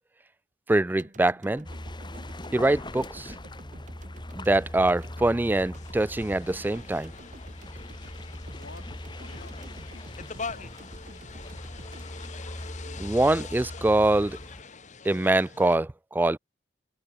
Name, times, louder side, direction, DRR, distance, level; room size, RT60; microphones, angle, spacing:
voice 1, 0.7-1.7 2.5-3.4 4.4-7.1 13.0-14.4 15.0-16.4, right 2 dB, 10° right, 0.3 m, -24 dB
sound 1, 1.0-13.2 13.6-13.7, right 1 dB, 45° right, 4.2 m, -49 dB
sound 2, 1.6-14.6, left 1 dB, 25° left, 2.5 m, -41 dB
sound 3, 5.7-15.8, left 5 dB, 40° left, 1.5 m, -44 dB
voice 2, 8.5-10.8, left 3 dB, 80° left, 3.2 m, -52 dB
head